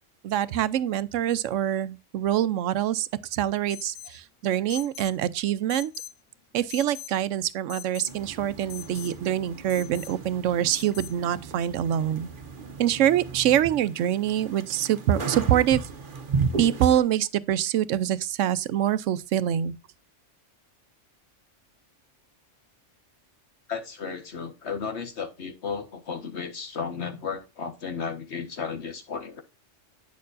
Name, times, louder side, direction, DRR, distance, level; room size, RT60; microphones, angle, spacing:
voice 1, 0.2-5.9 6.5-12.3 12.8-15.9 16.6-19.7, right 11 dB, 85° right, 0.9 m, -25 dB
Alarm, 3.7-4.2 4.7-5.2 5.7-6.2 6.7-7.2 7.7-8.2 8.7-9.1 9.7-10.1 10.7-11.1, left 11 dB, 80° left, 0.9 m, -41 dB
sound 1, 8.1-17.0, right 4 dB, 50° right, 1.0 m, -35 dB
voice 2, 23.7-29.4, left 6 dB, 65° left, 1.5 m, -34 dB
9.3 x 6.6 x 2.5 m
omnidirectional pair, 1.3 m